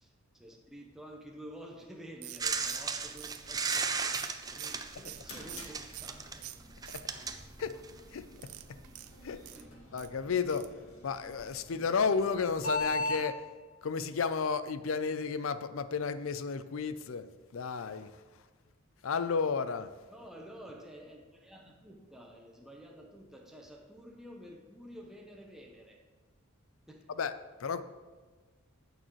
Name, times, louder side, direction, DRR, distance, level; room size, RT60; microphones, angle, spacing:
voice 1, 0.0-6.5 9.5-9.7 20.1-26.1 26.9-27.1, equal, ahead, -1 dB, 0.8 m, -50 dB
sound 1, 2.2-6.2 6.4-7.4 8.4-10.1 10.5-10.8 11.1-11.2 11.5-11.6, right 15 dB, 85° right, 0.4 m, -47 dB
sound 2, 2.4-8.1 9.1-9.2, right 5 dB, 15° right, 0.4 m, -36 dB
sound 3, 4.8-13.2, left 2 dB, 80° left, 2.2 m, -41 dB
voice 2, 8.1-8.8 9.2-9.4 9.9-10.7 11.0-13.4 13.8-18.2 19.0-19.9 27.2-27.3 27.6-27.8, left 5 dB, 65° left, 13 dB, 0.5 m, -32 dB
15.0 x 6.6 x 3.1 m, 1.4 s
head